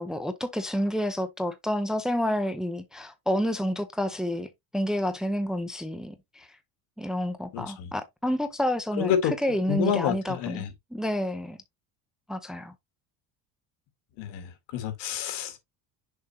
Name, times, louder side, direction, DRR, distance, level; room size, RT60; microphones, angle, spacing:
voice 1, 0.0-6.5 7.0-10.6 10.9-11.6 12.3-12.7, equal, ahead, 0.7 m, -29 dB
voice 2, 7.5-7.9 9.0-9.3 9.7-10.7 14.2-15.6, left 9 dB, 80° left, 2.0 m, -28 dB
6.8 x 5.2 x 2.9 m
cardioid pair, 145°, 42 cm